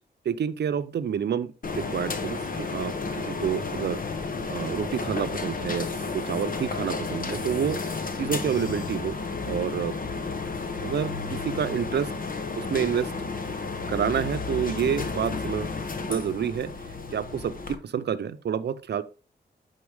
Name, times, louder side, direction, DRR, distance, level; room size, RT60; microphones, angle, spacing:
voice 1, 0.2-4.0 4.5-5.9 6.1-7.8 8.2-9.2 9.5-9.9 10.8-12.1 12.6-13.1 13.9-15.8 16.1-16.7 17.1-19.0, right 8 dB, 70° right, 12 dB, 0.7 m, -28 dB
sound 1, 1.6-17.8, left 4 dB, 50° left, 1.1 m, -32 dB
9.6 x 4.3 x 3.5 m, 0.34 s
cardioid pair, 75°, 18 cm